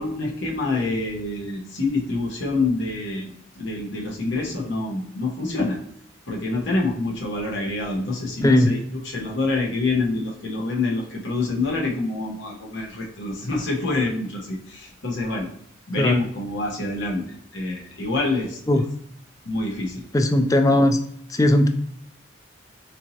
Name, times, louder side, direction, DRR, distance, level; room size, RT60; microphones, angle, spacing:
voice 1, 0.0-5.8 6.3-8.8 9.0-15.5 15.9-18.8 19.4-20.0, left 3 dB, 60° left, -1 dB, 1.0 m, -26 dB
voice 2, 8.4-8.7 16.0-16.2 18.7-18.8 20.1-21.0 21.3-21.7, left 1 dB, 15° left, 7 dB, 0.3 m, -18 dB
4.5 x 2.7 x 2.8 m, 0.68 s
head